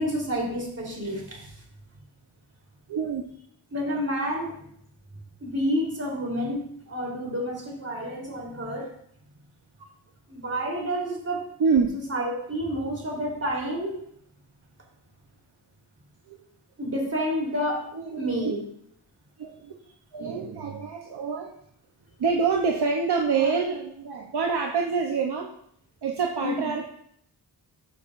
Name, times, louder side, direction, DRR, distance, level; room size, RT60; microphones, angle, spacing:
voice 1, 0.0-1.5 3.7-4.6 5.4-6.6 6.9-8.9 10.3-11.5 12.1-14.0 16.8-17.9 18.2-18.6 26.4-26.6, equal, 35° right, -2 dB, 3.5 m, -29 dB
voice 2, 2.9-3.3 11.6-11.9 16.3-16.4 17.9-18.5 19.4-19.7 20.1-21.5 22.2-25.5 26.0-26.8, right 5 dB, 65° right, 1 dB, 0.9 m, -26 dB
13.5 x 6.6 x 2.6 m, 0.69 s
wide cardioid pair, 100°, 42 cm